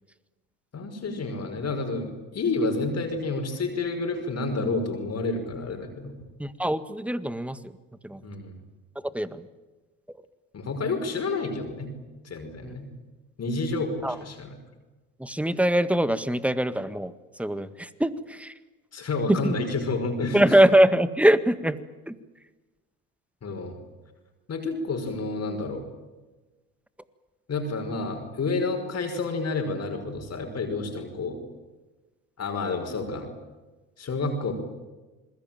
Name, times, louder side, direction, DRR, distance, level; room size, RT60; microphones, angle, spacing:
voice 1, 0.7-6.1 8.2-8.5 10.5-11.9 12.2-12.9 13.4-14.5 18.9-20.4 23.4-23.8 24.5-25.8 27.5-31.4 32.4-33.3 34.0-34.5, left 3 dB, 40° left, 4 dB, 5.5 m, -29 dB
voice 2, 6.4-7.8 8.0-8.2 9.1-9.5 10.1-10.2 12.6-12.8 14.0-14.2 15.2-18.5 19.3-19.6 20.3-21.8 22.1-22.2, right 1 dB, 5° right, 13 dB, 1.8 m, -23 dB
27.5 x 21.0 x 9.1 m, 1.2 s
hypercardioid pair, 65°, 37 cm